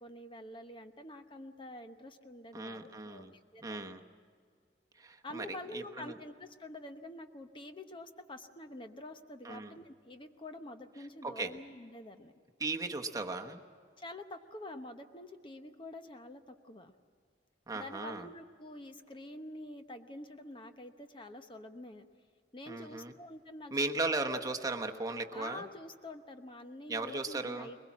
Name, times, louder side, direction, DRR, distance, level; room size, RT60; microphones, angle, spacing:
voice 1, 0.0-3.3 3.5-3.9 5.2-12.3 14.0-16.9 17.7-22.1 22.5-23.7 25.3-27.8, left 1 dB, 30° left, 7 dB, 0.9 m, -47 dB
voice 2, 2.5-3.3 3.6-4.0 5.0-6.2 9.4-9.7 11.2-11.5 12.6-13.6 17.7-18.3 22.7-23.1 23.7-25.7 26.9-27.7, right 3 dB, 20° right, 3 dB, 1.1 m, -36 dB
22.0 x 21.0 x 7.3 m, 2.1 s
head